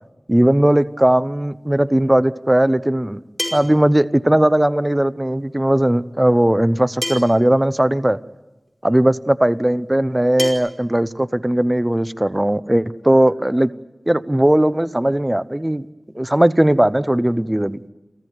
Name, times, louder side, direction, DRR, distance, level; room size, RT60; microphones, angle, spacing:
voice 1, 0.3-3.2 3.5-8.2 8.8-13.7 14.1-15.9 16.1-17.8, right 1 dB, 20° right, 16 dB, 0.8 m, -17 dB
sound 1, 1.7-1.8 3.4-3.9 5.4-5.5 7.0-7.5 8.7-8.8 10.4-10.5, equal, 5° left, 5.1 m, -27 dB
29.0 x 14.5 x 9.8 m, 1.1 s
wide cardioid pair, 50°, 0 cm